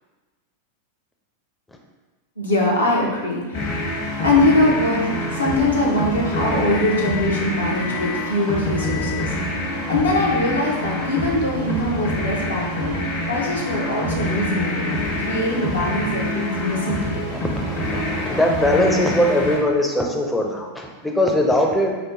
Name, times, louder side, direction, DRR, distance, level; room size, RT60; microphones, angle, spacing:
voice 1, 2.4-9.6 9.9-17.3, left 1 dB, 75° left, -3 dB, 0.8 m, -22 dB
sound 1, 3.5-19.6, left 1 dB, 50° left, 1.1 m, -26 dB
voice 2, 17.3-21.9, left 1 dB, 5° left, 0 dB, 0.5 m, -21 dB
4.6 x 2.2 x 3.8 m, 1.2 s
figure-of-eight pair, 90°, 0 cm